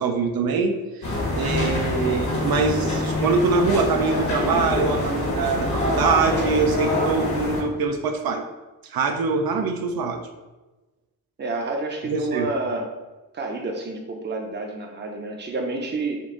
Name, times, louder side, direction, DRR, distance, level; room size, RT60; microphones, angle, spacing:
voice 1, 0.0-8.4 8.8-10.2 12.1-12.5, right 4 dB, 80° right, 5 dB, 0.5 m, -24 dB
sound 1, 1.0-7.6, left 1 dB, 55° left, 1.2 m, -25 dB
voice 2, 11.4-12.9 13.3-16.2, right 3 dB, 30° right, 2 dB, 0.6 m, -29 dB
5.3 x 2.5 x 3.7 m, 1.1 s
wide cardioid pair, 180°, 35 cm